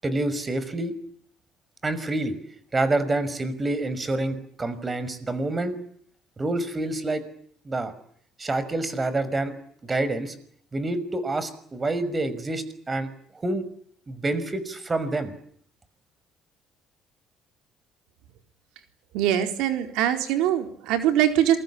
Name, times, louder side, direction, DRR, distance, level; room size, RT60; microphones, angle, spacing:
voice 1, 0.0-0.9 1.8-2.3 2.7-5.8 6.4-7.2 7.7-7.9 8.4-9.5 9.8-10.3 10.7-13.1 13.4-13.6 14.1-15.3, right 2 dB, 25° right, 14 dB, 5.8 m, -27 dB
voice 2, 19.1-21.6, right 11 dB, 85° right, 6 dB, 4.3 m, -22 dB
28.0 x 23.0 x 8.6 m, 0.66 s
cardioid pair, 90°, 0 cm